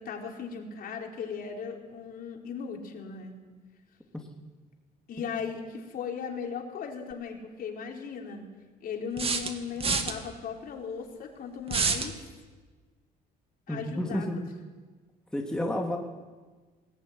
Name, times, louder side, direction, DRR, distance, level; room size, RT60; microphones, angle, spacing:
voice 1, 0.0-3.3 5.1-8.5 8.8-12.2 13.7-14.3, left 6 dB, 60° left, 1 dB, 5.0 m, -37 dB
sound 1, 7.1-7.2 9.2-10.1 11.7-12.1, right 4 dB, 35° right, 2.5 m, -27 dB
voice 2, 13.7-14.4 15.3-16.0, left 1 dB, 5° left, 0 dB, 3.0 m, -30 dB
21.0 x 18.5 x 9.9 m, 1.3 s
cardioid pair, 110°, 17 cm